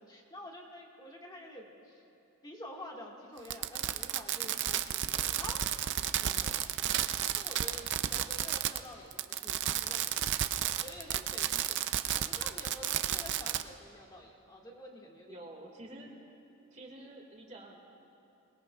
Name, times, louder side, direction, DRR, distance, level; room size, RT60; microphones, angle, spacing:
voice 1, 0.0-2.0 2.4-5.7 7.4-10.2 10.6-15.5, left 1 dB, 20° left, -1 dB, 1.7 m, -48 dB
Fireworks, 3.4-8.9 9.1-13.6, right 11 dB, 55° right, 0.5 m, -32 dB
voice 2, 6.2-6.7 15.3-16.1 16.7-17.8, right 1 dB, 30° right, 0 dB, 1.9 m, -49 dB
27.0 x 20.5 x 2.3 m, 2.7 s
head